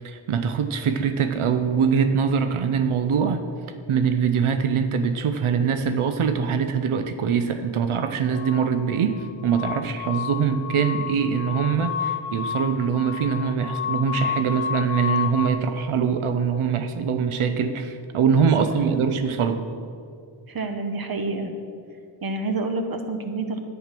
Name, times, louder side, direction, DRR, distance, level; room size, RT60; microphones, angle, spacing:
voice 1, 0.0-3.4 3.9-19.6, right 6 dB, 90° right, 8 dB, 0.8 m, -23 dB
sound 1, 8.3-15.5, left 9 dB, 50° left, 1.6 m, -31 dB
voice 2, 20.5-21.5 22.2-23.6, right 3 dB, 45° right, 6 dB, 1.2 m, -28 dB
10.5 x 9.5 x 6.0 m, 2.3 s
wide cardioid pair, 110°, 48 cm